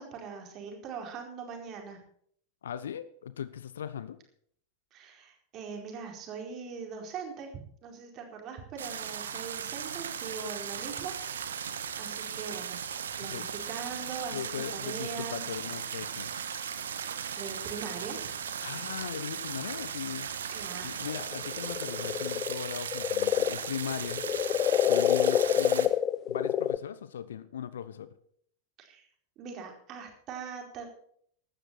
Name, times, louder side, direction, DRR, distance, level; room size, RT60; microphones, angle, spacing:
voice 1, 0.0-2.0 4.9-7.5 7.8-11.1 12.0-12.8 13.2-15.4 17.0-18.2 20.5-20.9 28.8-29.1 29.4-30.9, right 6 dB, 35° right, 2 dB, 4.6 m, -41 dB
voice 2, 2.6-4.2 13.3-13.5 14.3-16.3 18.6-20.3 20.8-24.2 24.9-25.9 26.3-28.1, left 9 dB, 65° left, 16 dB, 1.0 m, -38 dB
sound 1, 8.8-25.9, right 8 dB, 65° right, 1.3 m, -37 dB
sound 2, 21.1-26.8, left 10 dB, 30° left, 0.7 m, -27 dB
16.0 x 12.5 x 4.4 m, 0.62 s
figure-of-eight pair, 90°, 0 cm